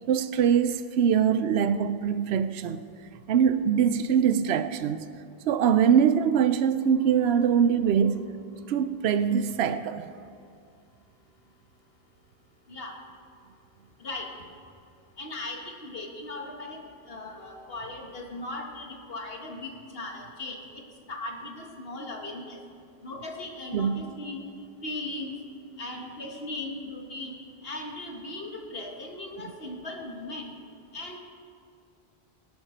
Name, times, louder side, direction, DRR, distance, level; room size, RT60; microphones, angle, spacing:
voice 1, 0.1-2.8 3.3-5.1 5.5-8.2 8.7-10.1 23.7-24.1, right 8 dB, 90° right, 0.8 m, -23 dB
voice 2, 15.2-16.8 17.1-20.8 21.1-22.6 23.0-24.4 24.8-25.4 25.8-27.3 27.6-30.5 30.9-31.2, left 2 dB, 70° left, 1.8 m, -38 dB
18.0 x 11.5 x 4.4 m
omnidirectional pair, 1.0 m